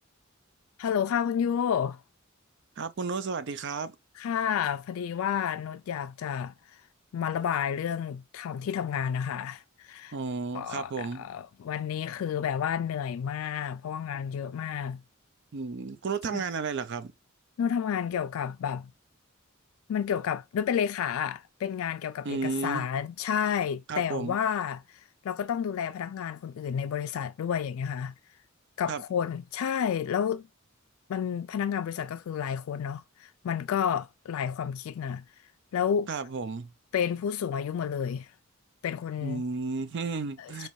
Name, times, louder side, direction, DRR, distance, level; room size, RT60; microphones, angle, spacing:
voice 1, 0.8-2.0 4.2-6.5 7.1-10.2 10.5-15.0 16.3-16.4 17.6-18.9 19.9-28.1 28.8-30.4 31.1-35.2 35.7-36.1 36.9-38.3 38.8-39.4 40.4-40.7, left 8 dB, 75° left, 0.3 m, -30 dB
voice 2, 2.8-4.0 10.1-11.3 15.5-17.1 22.2-22.9 23.9-24.4 28.9-29.0 36.1-36.7 39.2-40.7, right 4 dB, 55° right, 0.5 m, -33 dB
4.6 x 3.0 x 2.7 m
head